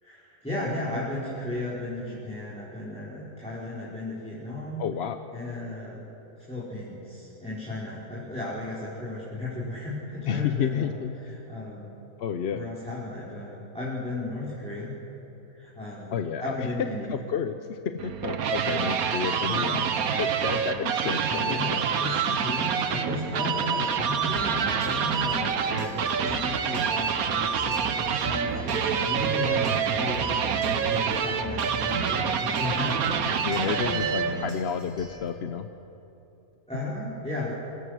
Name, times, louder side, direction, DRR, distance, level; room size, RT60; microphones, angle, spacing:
voice 1, 0.0-4.8 5.3-6.1 6.5-10.9 11.2-11.9 12.5-15.0 15.5-17.1 18.7-18.9 19.5-19.8 21.3-34.5 36.7-37.5, left 2 dB, 5° left, -8 dB, 3.9 m, -34 dB
voice 2, 4.8-5.2 10.3-11.1 12.2-12.7 16.1-16.7 17.1-19.8 20.2-21.8 33.4-35.7, left 7 dB, 55° left, 8 dB, 0.8 m, -31 dB
sound 1, 18.0-34.5, right 7 dB, 80° right, 1.4 m, -27 dB
sound 2, 24.2-35.3, right 1 dB, 20° left, 2.8 m, -42 dB
28.5 x 17.0 x 6.3 m, 3.0 s
omnidirectional pair, 1.5 m